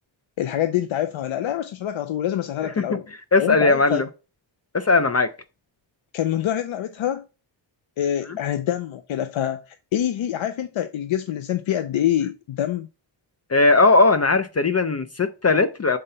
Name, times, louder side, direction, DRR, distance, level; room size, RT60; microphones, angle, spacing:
voice 1, 0.4-3.1 3.4-4.0 6.1-7.2 8.0-12.9, left 11 dB, 90° left, 0.6 m, -25 dB
voice 2, 3.3-4.1 4.7-5.3 13.5-16.0, left 3 dB, 35° left, 0.4 m, -18 dB
5.6 x 3.9 x 5.5 m
wide cardioid pair, 160°, 46 cm